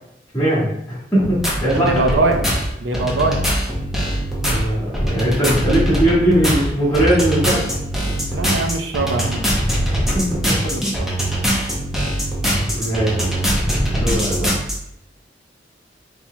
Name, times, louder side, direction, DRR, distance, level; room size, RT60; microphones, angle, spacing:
voice 1, 0.3-2.0 4.5-7.6 8.3-8.5 10.0-10.7 12.6-13.3 13.7-14.5, right 1 dB, 15° left, -8 dB, 1.5 m, -20 dB
sound 1, 1.2-14.7, equal, ahead, 0.8 m, -22 dB
voice 2, 1.7-2.4 2.8-3.4 8.3-9.5 10.6-10.8, right 2 dB, 90° right, 4 dB, 0.6 m, -21 dB
4.3 x 4.3 x 2.2 m, 0.81 s
head